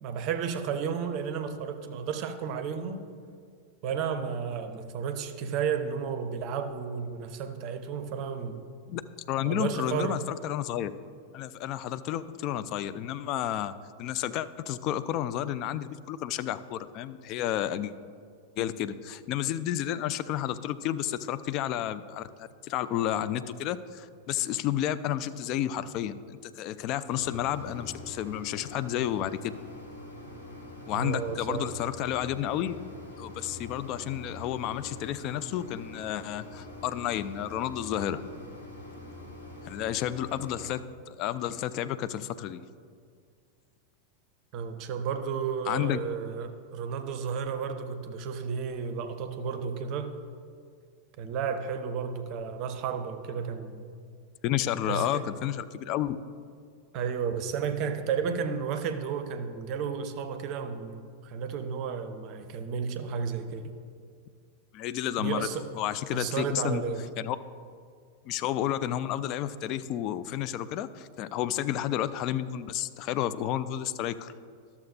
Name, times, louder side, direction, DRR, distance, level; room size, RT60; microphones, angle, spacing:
voice 1, 0.0-3.1 3.8-8.6 9.4-10.3 30.9-31.7 44.5-50.1 51.2-53.8 54.8-55.2 56.9-63.7 65.2-65.7 66.1-67.0, right 6 dB, 40° right, 9 dB, 0.6 m, -32 dB
voice 2, 9.3-10.9 11.3-13.7 14.0-17.9 18.6-29.5 30.9-32.7 33.2-38.2 39.6-42.6 45.7-46.0 54.4-56.2 64.7-65.5 65.8-66.8 67.2-67.4 68.3-74.3, left 11 dB, 40° left, 13 dB, 0.3 m, -31 dB
sound 1, 27.1-40.7, left 1 dB, 75° left, 1.5 m, -45 dB
12.0 x 7.0 x 2.7 m, 2.2 s
figure-of-eight pair, 90°, 0 cm